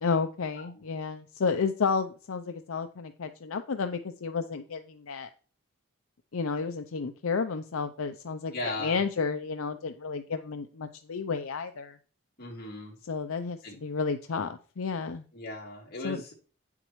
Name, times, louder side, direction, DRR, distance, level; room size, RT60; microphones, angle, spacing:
voice 1, 0.0-5.3 6.3-12.0 13.1-15.2 16.0-16.2, left 5 dB, 75° left, 7 dB, 0.6 m, -31 dB
voice 2, 8.5-9.0 12.4-13.0 13.6-13.8 15.3-16.3, left 2 dB, 50° left, -3 dB, 3.2 m, -37 dB
9.2 x 7.3 x 3.1 m, 0.39 s
head